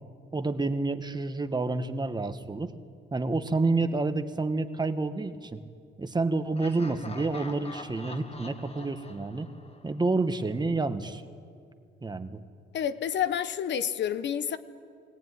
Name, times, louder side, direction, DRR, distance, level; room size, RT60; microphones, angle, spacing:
voice 1, 0.3-2.7 3.1-5.6 6.0-9.5 9.8-11.2 12.0-12.4, right 3 dB, 20° right, 1.4 m, -29 dB
Laughter, 6.5-10.4, left 3 dB, 30° left, 1.7 m, -45 dB
voice 2, 12.7-14.6, left 9 dB, 65° left, 1.1 m, -29 dB
21.5 x 18.5 x 9.6 m
cardioid pair, 90°, 20 cm